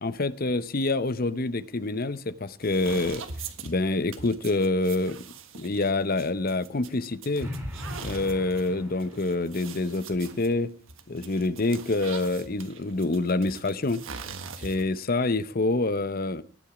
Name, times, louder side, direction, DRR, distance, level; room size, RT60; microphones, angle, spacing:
voice 1, 0.0-3.2 3.6-5.2 5.6-7.5 8.0-10.7 11.1-14.0 14.6-16.4, left 2 dB, 40° left, 0.7 m, -26 dB
sound 1, 2.6-15.0, right 5 dB, 65° right, 1.5 m, -43 dB
sound 2, 7.4-9.4, equal, 10° right, 3.8 m, -38 dB
18.0 x 9.0 x 4.9 m
head